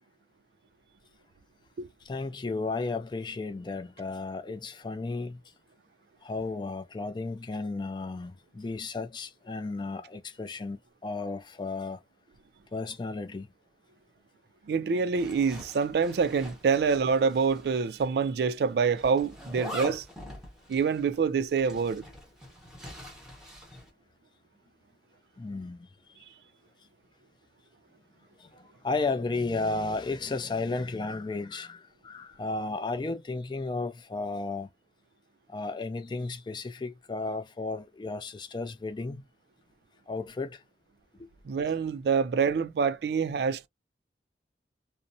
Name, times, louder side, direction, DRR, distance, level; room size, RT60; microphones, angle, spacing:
voice 1, 2.0-5.4 6.2-12.0 12.7-13.5 25.4-25.9 28.4-34.7 35.5-39.3 40.1-40.6 41.1-41.3, left 3 dB, 25° left, 0.3 m, -34 dB
voice 2, 14.7-20.0 20.7-22.0 41.4-43.7, right 5 dB, 65° right, 0.3 m, -26 dB
Zipper (clothing), 15.2-17.7 18.0-18.1 19.0-23.9, equal, 5° right, 0.7 m, -43 dB
2.6 x 2.0 x 2.6 m
head